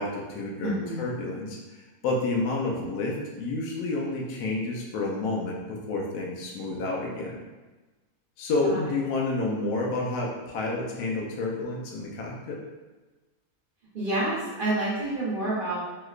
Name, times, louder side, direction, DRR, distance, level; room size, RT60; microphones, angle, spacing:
voice 1, 0.0-7.4 8.4-12.6, left 2 dB, 75° left, -2 dB, 1.1 m, -30 dB
voice 2, 0.6-1.0 8.6-8.8 13.9-15.8, right 2 dB, 45° right, -9 dB, 0.8 m, -28 dB
3.2 x 2.8 x 2.4 m, 1.2 s
omnidirectional pair, 1.7 m